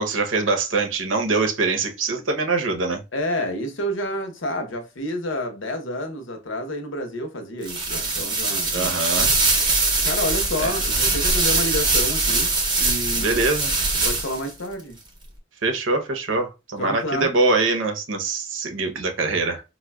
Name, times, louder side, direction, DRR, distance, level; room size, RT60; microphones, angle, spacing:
voice 1, 0.0-3.0 8.7-9.3 10.6-10.7 13.2-13.7 15.6-19.6, right 3 dB, 90° right, 0.8 m, -23 dB
voice 2, 3.1-8.9 10.0-13.4 14.0-15.0 16.8-17.3, left 1 dB, 90° left, 0.8 m, -29 dB
sound 1, 7.6-14.5, right 3 dB, 25° right, 0.6 m, -22 dB
4.7 x 2.2 x 2.2 m
head